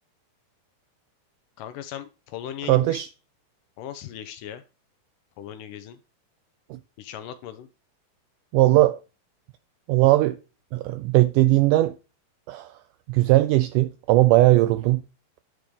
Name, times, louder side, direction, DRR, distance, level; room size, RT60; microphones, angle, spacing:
voice 1, 1.6-3.0 3.8-4.6 5.4-6.0 7.0-7.7, left 10 dB, 80° left, 2.0 m, -38 dB
voice 2, 2.7-3.1 6.7-6.8 8.5-9.0 9.9-10.4 10.7-12.0 12.5-12.7 13.1-15.0, right 17 dB, 85° right, 1.8 m, -19 dB
10.0 x 4.7 x 5.2 m
omnidirectional pair, 4.2 m